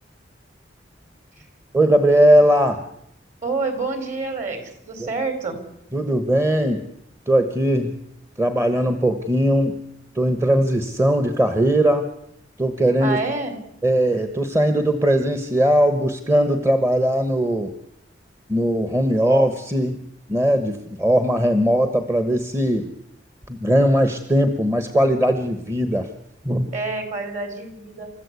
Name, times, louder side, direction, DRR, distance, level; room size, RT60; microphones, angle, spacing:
voice 1, 1.7-2.8 5.0-5.1 5.9-6.8 7.3-7.9 8.4-9.8 10.1-12.1 12.6-13.2 13.8-17.7 18.5-20.0 20.3-22.9 23.5-26.1 26.4-26.7, equal, 15° right, 9 dB, 1.2 m, -19 dB
voice 2, 3.4-5.6 13.0-13.6 26.7-28.1, right 3 dB, 40° right, 8 dB, 4.4 m, -27 dB
29.0 x 14.0 x 8.3 m, 0.79 s
head